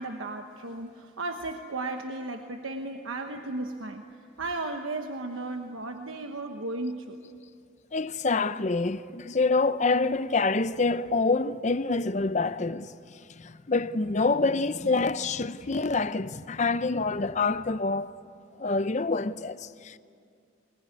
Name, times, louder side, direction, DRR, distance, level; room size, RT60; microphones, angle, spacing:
voice 1, 0.0-4.0 4.4-7.2, right 2 dB, 90° right, 1.2 m, -35 dB
voice 2, 7.9-12.9 13.3-18.1 18.6-20.0, left 3 dB, 35° left, 0.6 m, -26 dB
23.5 x 20.5 x 9.5 m
head